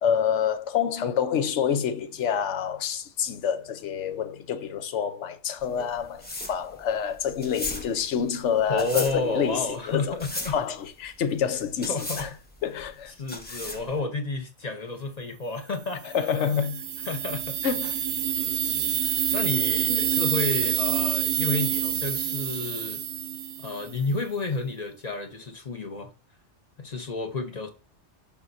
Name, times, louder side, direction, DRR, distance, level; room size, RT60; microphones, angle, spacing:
voice 1, 0.0-10.2 10.5-12.3 12.6-13.1 13.5-13.6 16.0-16.8 17.6-17.9, left 8 dB, 85° left, 1.0 m, -27 dB
sound 1, 5.6-14.0, left 1 dB, 10° left, 0.8 m, -37 dB
voice 2, 8.7-10.5 11.9-12.3 13.2-16.1 17.0-17.6 18.4-23.0 23.6-26.1 26.8-27.7, left 3 dB, 40° left, 0.8 m, -31 dB
sound 2, 16.0-24.0, right 9 dB, 65° right, 0.7 m, -27 dB
7.1 x 5.3 x 2.6 m
omnidirectional pair, 1.2 m